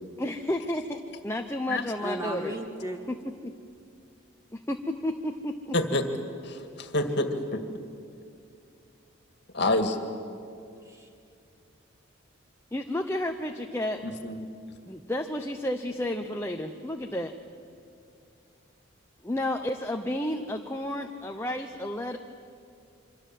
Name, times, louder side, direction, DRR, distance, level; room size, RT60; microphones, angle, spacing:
voice 1, 0.2-2.5 3.1-3.2 3.4-3.5 4.5-5.7 12.7-14.0 14.9-17.3 19.2-22.2, left 1 dB, 10° left, 4 dB, 0.8 m, -31 dB
voice 2, 2.0-3.0 10.8-11.1, right 1 dB, 15° right, 3 dB, 2.3 m, -35 dB
voice 3, 5.7-6.1 6.4-7.6 9.5-10.0 14.0-14.5, left 2 dB, 55° left, 6 dB, 2.0 m, -27 dB
27.5 x 25.0 x 7.6 m, 2.4 s
head